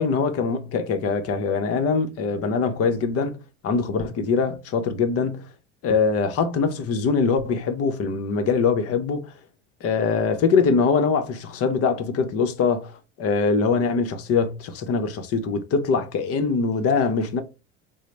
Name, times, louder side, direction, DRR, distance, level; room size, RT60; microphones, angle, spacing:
voice 1, 0.0-3.4 3.6-5.4 5.8-9.3 9.8-12.9 13.2-17.4, left 5 dB, 45° left, 0.7 m, -23 dB
3.8 x 2.0 x 3.2 m
hypercardioid pair, 80°, 33 cm